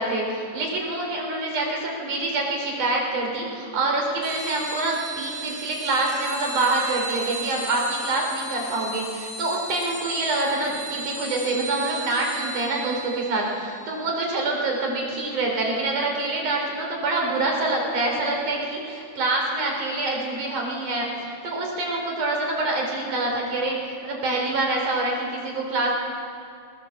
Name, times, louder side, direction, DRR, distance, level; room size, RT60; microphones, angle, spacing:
voice 1, 0.0-25.9, right 2 dB, 70° right, 0 dB, 5.4 m, -26 dB
sound 1, 4.2-16.3, right 2 dB, 20° right, 8.0 m, -36 dB
20.0 x 19.0 x 7.4 m, 2.3 s
omnidirectional pair, 3.7 m